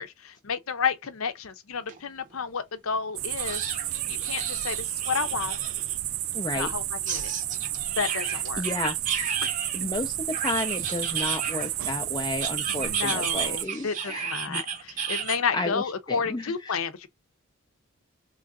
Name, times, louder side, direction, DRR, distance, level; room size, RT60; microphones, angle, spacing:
voice 1, 0.0-3.6 4.1-5.6 6.5-7.3 8.0-8.6 9.4-9.6 12.9-17.1, left 6 dB, 75° left, 0.6 m, -31 dB
sound 1, 1.9-2.0 2.3-2.4 3.4-6.0 7.1-9.8 10.3-11.8 12.4-15.4, right 7 dB, 35° right, 0.8 m, -33 dB
sound 2, 3.2-13.7, right 13 dB, 70° right, 0.5 m, -31 dB
voice 2, 6.3-6.7 8.2-9.0 9.7-14.6 15.5-16.8, left 2 dB, 20° left, 0.4 m, -32 dB
3.8 x 3.1 x 2.4 m
head